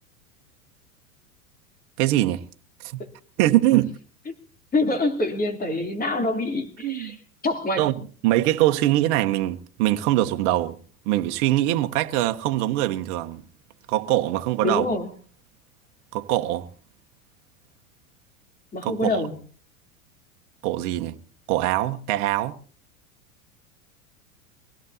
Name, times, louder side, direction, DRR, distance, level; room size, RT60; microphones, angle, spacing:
voice 1, 2.0-2.4 2.9-3.0 3.4-3.9 6.8-7.2 7.8-7.9 8.2-10.8 11.1-13.4 13.9-14.8 16.1-16.7 18.8-19.2 20.6-21.2 21.5-22.5, right 15 dB, 55° right, 1.3 m, -22 dB
voice 2, 4.7-7.2 7.4-7.8 14.6-15.1 18.7-19.4, left 2 dB, 20° left, 3.4 m, -25 dB
24.0 x 17.0 x 2.8 m
hypercardioid pair, 95°, 43 cm